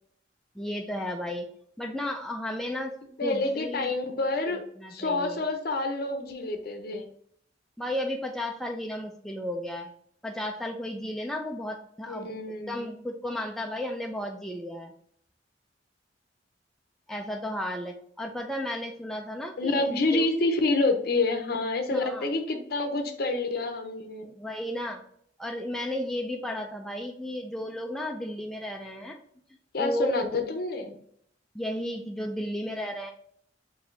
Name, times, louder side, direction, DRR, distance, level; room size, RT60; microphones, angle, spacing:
voice 1, 0.6-1.5 1.8-2.9 3.2-3.9 4.5-5.4 7.8-9.9 10.2-12.3 12.7-14.9 17.1-20.2 21.9-22.3 24.4-25.0 25.4-29.2 29.8-30.1 31.5-33.1, left 1 dB, ahead, 2 dB, 0.3 m, -33 dB
voice 2, 3.2-4.6 4.9-7.0 12.1-12.9 19.6-24.3 29.7-31.0, left 2 dB, 55° left, 6 dB, 0.6 m, -28 dB
4.7 x 2.7 x 3.2 m, 0.65 s
head